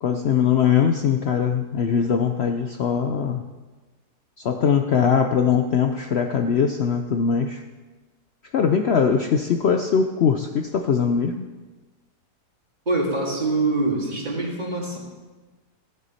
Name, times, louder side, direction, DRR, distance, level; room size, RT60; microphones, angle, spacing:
voice 1, 0.0-3.4 4.4-7.6 8.5-11.5, left 7 dB, 80° left, 5 dB, 0.5 m, -21 dB
voice 2, 12.9-15.0, right 2 dB, 25° right, -2 dB, 2.2 m, -24 dB
16.0 x 8.1 x 4.2 m, 1.3 s
omnidirectional pair, 1.8 m